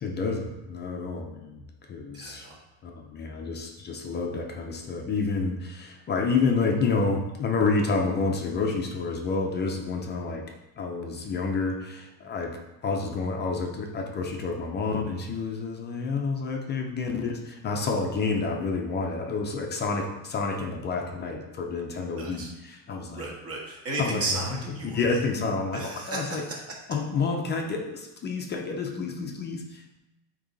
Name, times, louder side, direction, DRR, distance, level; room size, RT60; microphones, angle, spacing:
voice 1, 0.0-2.5 2.8-10.5 10.8-23.3 24.0-24.4 24.8-26.4 26.9-30.0, left 4 dB, 25° left, 2 dB, 0.6 m, -29 dB
voice 2, 2.1-2.6 22.1-22.5 23.1-25.2 25.7-26.6, right 2 dB, 35° right, -2 dB, 1.7 m, -34 dB
8.4 x 3.1 x 3.9 m, 1.0 s
cardioid pair, 145°, 42 cm